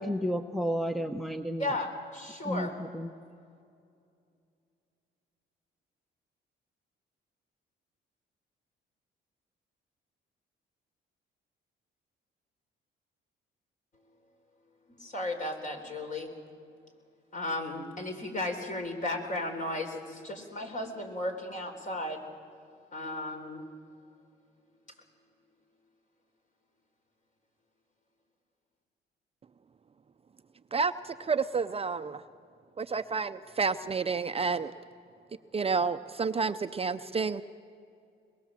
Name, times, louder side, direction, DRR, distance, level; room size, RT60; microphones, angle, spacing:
voice 1, 0.0-1.7 2.4-3.1, equal, ahead, 8 dB, 0.8 m, -32 dB
voice 2, 1.6-2.7 14.9-16.3 17.3-22.2 22.9-23.7, left 1 dB, 40° left, 4 dB, 3.8 m, -35 dB
voice 3, 30.7-32.2 32.8-34.7 35.5-37.4, right 5 dB, 30° right, 10 dB, 0.6 m, -30 dB
22.5 x 21.0 x 7.4 m, 2.4 s
cardioid pair, 90°, 20 cm